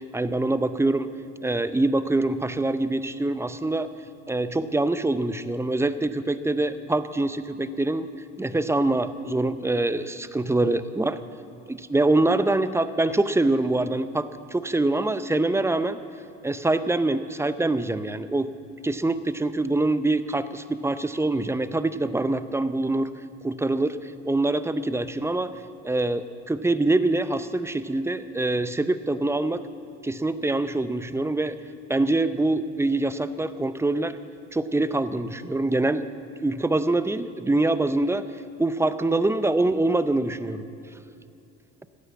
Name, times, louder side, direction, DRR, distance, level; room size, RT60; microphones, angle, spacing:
voice 1, 0.1-1.1 1.4-3.9 4.3-8.1 8.4-11.2 11.7-16.0 16.4-18.5 18.8-23.1 23.4-25.5 25.8-29.6 30.0-31.6 31.9-34.2 34.5-36.0 36.4-38.3 38.6-40.7, right 2 dB, 10° right, 13 dB, 0.6 m, -24 dB
15.0 x 9.9 x 8.4 m, 2.7 s
supercardioid pair, 100°, 30 cm